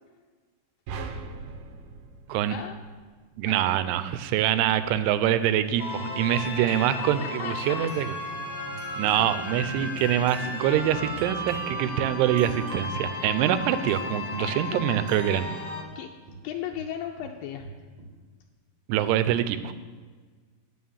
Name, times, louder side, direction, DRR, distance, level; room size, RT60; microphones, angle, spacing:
sound 1, 0.9-3.3, right 4 dB, 75° right, 2.3 m, -39 dB
sound 2, 1.5-2.0 2.3-2.7 4.0-5.0 6.2-7.2 7.5-10.5 11.5-11.6 12.2-12.5 12.9-13.1 13.6-13.7 14.5-16.0 16.3-18.2, right 4 dB, 55° right, 2.3 m, -46 dB
voice 1, 2.5-2.8 3.4-3.7 4.8-5.0 6.4-7.9 9.2-10.1 14.4-14.8 15.3-15.7 16.0-16.1 16.4-17.7, left 9 dB, 85° left, 2 dB, 2.0 m, -38 dB
voice 2, 3.4-8.1 9.0-15.5 18.9-19.7, right 11 dB, 90° right, 12 dB, 2.7 m, -25 dB
sound 3, 5.8-15.8, left 2 dB, 50° left, 0.9 m, -34 dB
9.4 x 6.4 x 7.1 m, 1.4 s
omnidirectional pair, 4.6 m